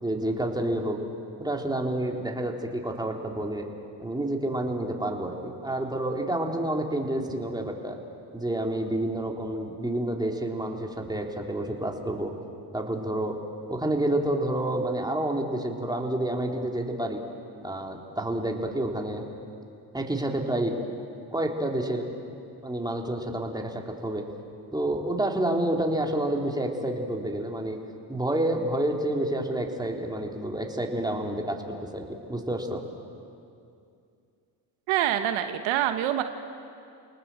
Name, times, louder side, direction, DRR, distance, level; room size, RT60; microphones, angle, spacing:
voice 1, 0.0-1.0 1.4-3.7 4.0-8.0 8.3-12.3 12.7-13.4 13.7-17.2 17.6-19.2 19.9-20.7 21.3-22.1 22.6-24.2 24.7-27.8 28.1-31.6 31.9-32.8, right 1 dB, 10° right, 1 dB, 3.6 m, -29 dB
voice 2, 34.9-36.2, right 11 dB, 85° right, 8 dB, 1.2 m, -25 dB
29.5 x 19.0 x 7.7 m, 2.5 s
supercardioid pair, 60°, 47 cm